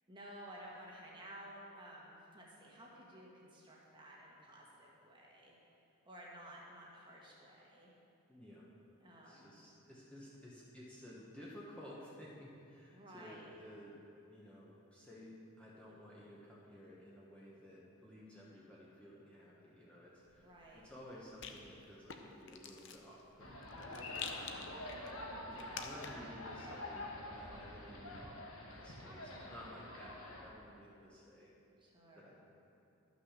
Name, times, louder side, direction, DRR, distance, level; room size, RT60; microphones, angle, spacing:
voice 1, 0.1-5.5 6.0-7.9 9.0-9.7 12.9-13.5 20.4-20.9 23.9-24.4 31.8-32.3, right 1 dB, 20° right, -4 dB, 1.4 m, -54 dB
voice 2, 8.3-8.7 9.2-14.0 14.3-20.5 20.7-24.8 25.5-28.3 28.6-31.5 32.1-32.4, equal, 5° left, -7 dB, 1.2 m, -54 dB
Rattle, 20.3-26.4, left 6 dB, 55° left, 0.7 m, -50 dB
sound 1, 23.4-30.4, left 1 dB, 70° left, 1.4 m, -47 dB
12.0 x 6.1 x 6.5 m, 2.7 s
head